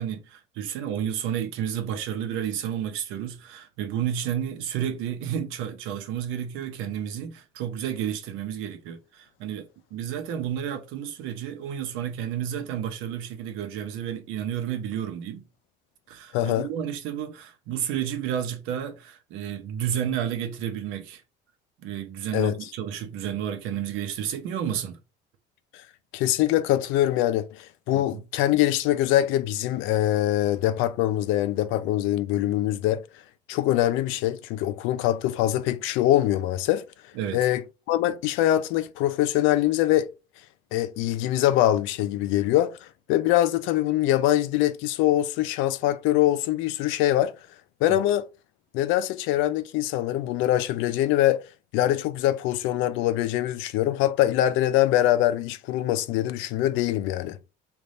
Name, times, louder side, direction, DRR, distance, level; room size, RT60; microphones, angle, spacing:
voice 1, 0.0-15.4 16.1-21.2 21.8-25.0 27.9-28.2 37.1-37.5 47.9-48.0, right 9 dB, 90° right, 0.9 m, -31 dB
voice 2, 16.3-16.7 22.3-22.5 26.1-33.0 33.5-36.8 37.3-40.1 40.7-47.3 47.8-48.3 48.7-51.4 51.7-57.4, left 13 dB, 75° left, 0.5 m, -23 dB
3.4 x 2.5 x 4.0 m
cardioid pair, 165°, 20 cm